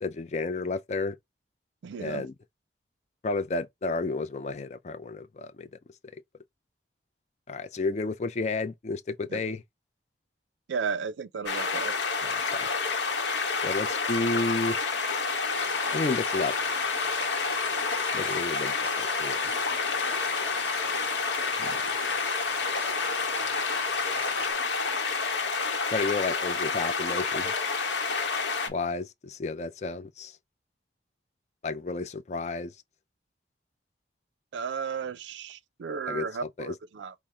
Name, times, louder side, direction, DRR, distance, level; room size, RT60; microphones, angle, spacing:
voice 1, 0.0-1.2 2.0-2.3 3.2-5.7 7.5-9.6 12.2-12.7 13.6-14.8 15.9-16.6 18.1-19.5 21.6-21.8 25.9-27.5 28.7-30.3 31.6-32.7 36.1-36.3 36.6-36.7, left 3 dB, 40° left, 0.4 m, -31 dB
voice 2, 1.8-2.3 9.3-9.4 10.7-12.0 34.5-37.1, right 6 dB, 85° right, 0.4 m, -34 dB
sound 1, 11.5-28.7, left 4 dB, 80° left, 0.9 m, -29 dB
sound 2, 15.5-24.5, left 2 dB, 10° left, 0.8 m, -41 dB
4.8 x 2.0 x 4.2 m
head